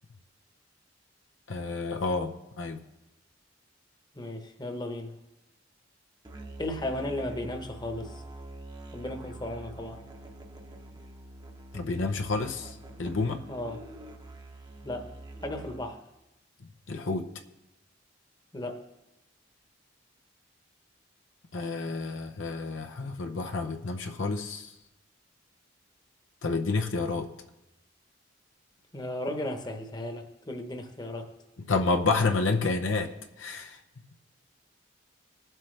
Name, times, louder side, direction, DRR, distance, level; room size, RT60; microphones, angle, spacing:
voice 1, 1.5-2.8 11.7-12.7 13.0-13.4 16.9-17.3 21.5-24.7 26.4-27.3 31.7-33.1 33.4-33.8, left 3 dB, 90° left, 5 dB, 0.8 m, -29 dB
voice 2, 4.1-5.1 6.6-8.2 8.9-10.0 13.5-13.8 14.8-15.1 15.4-16.0 18.5-18.9 28.9-31.3, left 1 dB, 20° left, 5 dB, 1.0 m, -35 dB
Musical instrument, 6.3-16.0, right 1 dB, 25° right, 0.8 m, -45 dB
20.0 x 7.7 x 3.3 m, 0.97 s
head